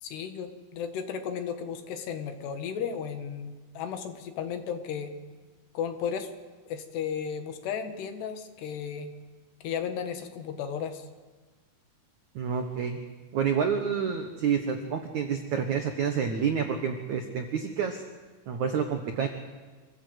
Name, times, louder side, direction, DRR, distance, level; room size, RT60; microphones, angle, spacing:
voice 1, 0.0-5.1 5.7-6.3 6.7-9.1 9.6-11.1, left 7 dB, 65° left, 7 dB, 3.5 m, -34 dB
voice 2, 12.3-13.0 13.3-18.0 18.5-19.3, right 7 dB, 80° right, 5 dB, 1.7 m, -28 dB
27.0 x 15.0 x 8.1 m, 1.3 s
omnidirectional pair, 5.5 m